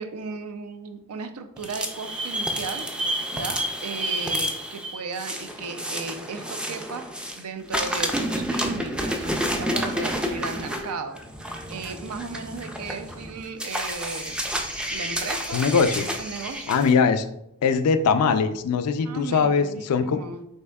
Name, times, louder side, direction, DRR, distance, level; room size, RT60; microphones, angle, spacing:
voice 1, 0.0-2.9 3.3-7.1 7.4-9.3 9.6-11.2 11.7-14.4 14.9-15.6 16.2-16.8 19.0-20.5, right 4 dB, 85° right, 7 dB, 0.5 m, -35 dB
sound 1, 1.6-7.4 7.7-16.9, equal, 5° right, 0.3 m, -30 dB
voice 2, 15.5-16.0 16.7-17.2 17.6-20.2, left 5 dB, 90° left, 10 dB, 0.4 m, -21 dB
5.4 x 3.5 x 2.3 m, 0.79 s
head